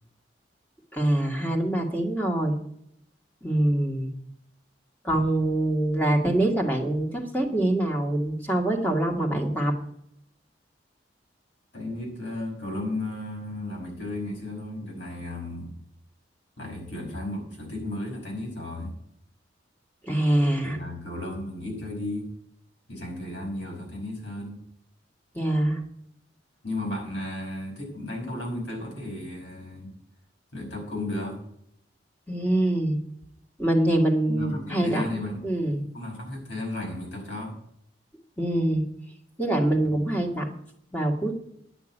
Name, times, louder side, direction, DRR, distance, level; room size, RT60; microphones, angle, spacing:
voice 1, 0.9-2.5 3.4-4.1 5.0-9.7 20.0-20.8 25.3-25.8 32.3-33.0 33.6-35.8 38.4-38.8 39.4-40.5 40.9-41.3, right 1 dB, 10° left, 0 dB, 1.9 m, -24 dB
voice 2, 11.7-15.7 16.6-18.9 20.6-22.3 22.9-24.6 26.6-29.9 30.5-31.3 34.3-35.6 35.9-37.5 39.8-40.0, left 1 dB, 75° left, -1 dB, 5.4 m, -34 dB
10.0 x 6.5 x 9.0 m, 0.72 s
head